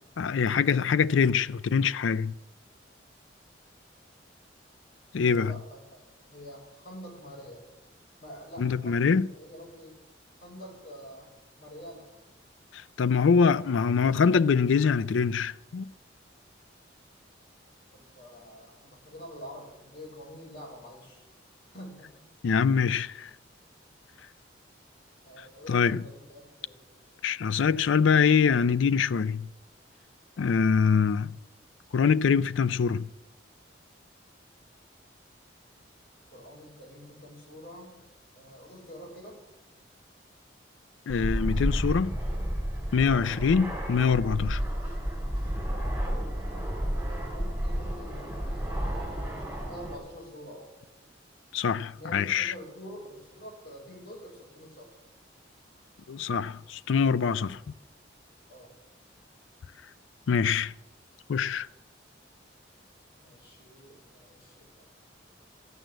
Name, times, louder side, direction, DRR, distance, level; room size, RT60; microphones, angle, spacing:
voice 1, 0.2-2.3 5.1-5.5 8.6-9.3 12.7-15.9 22.4-23.3 25.7-26.0 27.2-29.5 30.4-31.4 31.9-33.1 41.1-42.1 42.9-44.6 51.5-52.5 56.1-57.6 60.3-60.7 61.3-61.7, left 6 dB, 90° left, 0.4 m, -24 dB
voice 2, 5.1-6.0 6.3-7.6 8.2-9.9 10.4-11.3 11.6-12.1 17.9-21.2 21.7-22.3 25.2-26.8 36.3-38.0 38.3-39.4 46.9-50.7 51.9-55.0 58.5-58.7 63.2-65.0, equal, 55° left, 5.7 m, -47 dB
Fixed-wing aircraft airplane, 41.1-49.9, equal, 5° right, 4.4 m, -31 dB
13.5 x 9.1 x 7.6 m
head